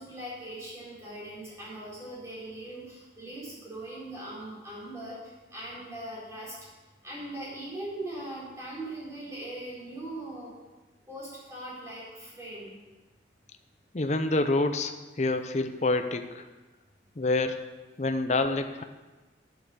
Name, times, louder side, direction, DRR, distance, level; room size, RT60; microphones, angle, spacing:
voice 1, 0.0-6.5 7.0-10.5 11.1-12.8, right 1 dB, 15° right, -7 dB, 4.3 m, -40 dB
voice 2, 13.9-16.4 17.2-17.6 18.0-18.8, left 2 dB, 40° left, 8 dB, 0.6 m, -27 dB
8.7 x 8.0 x 6.7 m, 1.2 s
head